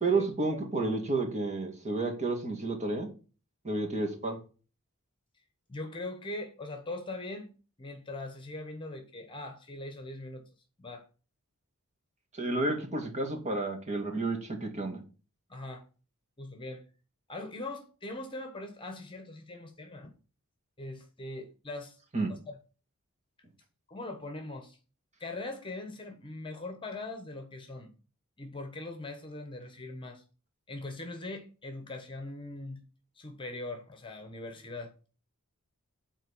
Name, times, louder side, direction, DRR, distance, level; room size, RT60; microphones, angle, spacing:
voice 1, 0.0-3.1 3.6-4.4 12.3-15.0 22.1-22.3, right 3 dB, 30° right, 2.2 m, -31 dB
voice 2, 5.7-7.5 7.8-10.4 10.8-11.0 15.5-15.8 16.4-16.8 17.3-20.1 20.8-22.0 22.3-22.6 23.9-24.8 25.2-27.9 28.4-30.2 30.7-32.8 33.2-34.9, left 2 dB, 20° left, 1.3 m, -41 dB
9.0 x 4.4 x 7.1 m
head